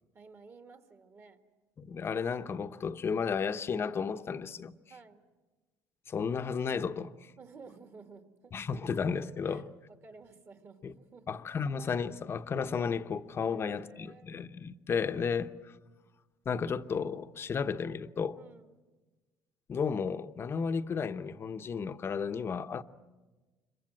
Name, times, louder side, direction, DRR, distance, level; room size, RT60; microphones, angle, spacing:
voice 1, 0.1-1.4 4.9-5.2 7.4-8.6 9.4-11.4 13.4-14.3 18.4-18.8, right 4 dB, 35° right, 2.0 m, -54 dB
voice 2, 1.8-4.8 6.1-7.3 8.5-9.6 10.8-10.9 11.3-15.5 16.4-18.4 19.7-22.8, left 6 dB, 35° left, 0.9 m, -33 dB
26.0 x 23.0 x 7.7 m
cardioid pair, 115°, 7 cm